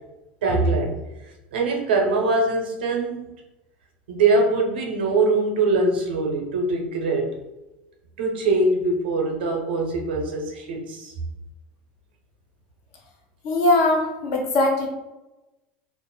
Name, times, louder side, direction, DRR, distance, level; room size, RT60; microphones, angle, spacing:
voice 1, 0.4-1.0 1.5-3.3 4.1-7.4 8.2-11.1, right 3 dB, 85° right, 2 dB, 0.7 m, -22 dB
voice 2, 13.4-14.9, left 2 dB, 65° left, 0 dB, 0.8 m, -20 dB
2.5 x 2.0 x 3.8 m, 1.0 s
hypercardioid pair, 90°, 5 cm